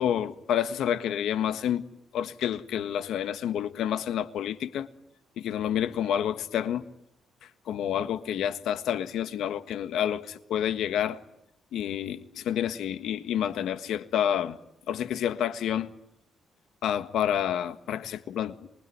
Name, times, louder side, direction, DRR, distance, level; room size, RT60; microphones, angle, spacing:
voice 1, 0.0-1.8 2.1-4.9 5.4-6.8 7.7-11.2 11.7-14.6 14.9-15.9 16.8-18.5, left 10 dB, 75° left, 1.6 m, -29 dB
26.5 x 23.5 x 9.5 m
cardioid pair, 90°, 0 cm